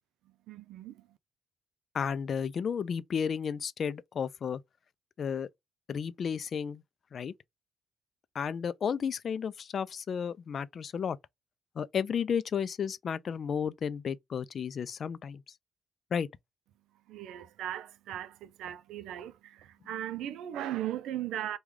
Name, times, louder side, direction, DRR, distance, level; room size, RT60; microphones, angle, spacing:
voice 1, 0.5-1.0 17.1-21.6, right 12 dB, 85° right, 0.4 m, -38 dB
voice 2, 1.9-4.6 5.2-5.5 5.9-6.8 7.1-7.3 8.3-11.2 11.8-15.4 16.1-16.3, left 7 dB, 55° left, 0.3 m, -33 dB
3.1 x 2.3 x 3.5 m
cardioid pair, 90°, 0 cm